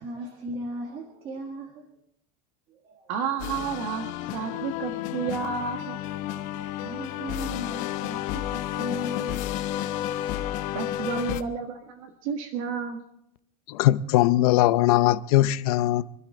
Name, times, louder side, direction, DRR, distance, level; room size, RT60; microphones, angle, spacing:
voice 1, 0.0-1.8 2.7-3.1 6.2-10.2, equal, 30° right, 1.8 m, -38 dB
voice 2, 3.1-6.0 10.7-13.0, right 6 dB, 65° right, 1.7 m, -31 dB
sound 1, 3.4-11.4, left 13 dB, 45° left, 0.9 m, -31 dB
voice 3, 13.7-16.0, left 14 dB, 80° left, 0.7 m, -20 dB
26.5 x 12.5 x 3.9 m
cardioid pair, 180°, 19 cm